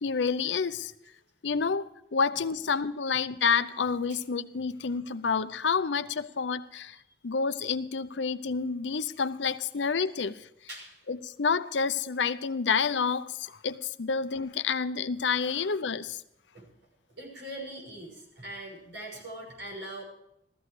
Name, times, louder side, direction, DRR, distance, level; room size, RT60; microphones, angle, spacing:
voice 1, 0.0-0.9 1.4-7.0 7.2-10.5 11.1-16.2, left 5 dB, 85° left, 0.6 m, -29 dB
voice 2, 10.7-11.0 16.5-16.6 17.2-20.0, right 1 dB, 85° right, 6.1 m, -41 dB
15.0 x 14.0 x 4.8 m
head